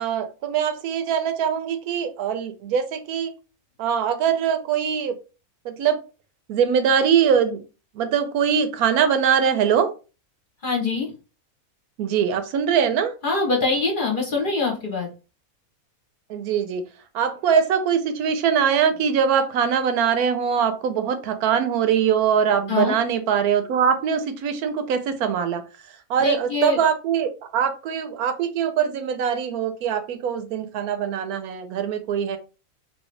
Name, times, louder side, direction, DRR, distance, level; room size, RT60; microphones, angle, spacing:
voice 1, 0.0-3.3 3.8-5.2 5.6-6.0 6.5-7.6 7.9-9.9 12.0-13.1 16.3-16.8 17.1-25.6 26.1-32.4, right 7 dB, 85° right, 9 dB, 1.1 m, -22 dB
voice 2, 10.6-11.1 13.2-15.1 22.7-22.9 26.2-26.8, left 4 dB, 45° left, -1 dB, 0.8 m, -23 dB
2.9 x 2.7 x 3.1 m, 0.33 s
omnidirectional pair, 1.5 m